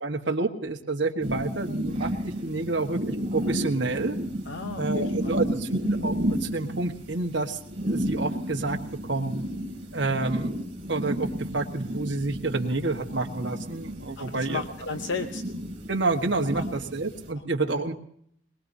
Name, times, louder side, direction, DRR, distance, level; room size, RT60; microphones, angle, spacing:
voice 1, 0.0-4.2 4.8-7.6 7.8-8.8 9.0-9.3 9.9-10.5 10.9-14.6 15.9-17.9, right 3 dB, 65° right, 2 dB, 1.4 m, -29 dB
sound 1, 1.2-17.3, equal, 30° right, 2.8 m, -32 dB
voice 2, 4.5-5.4 14.2-15.4 16.5-16.7 17.7-17.9, left 4 dB, 65° left, 7 dB, 0.8 m, -34 dB
22.0 x 21.5 x 2.8 m, 0.68 s
head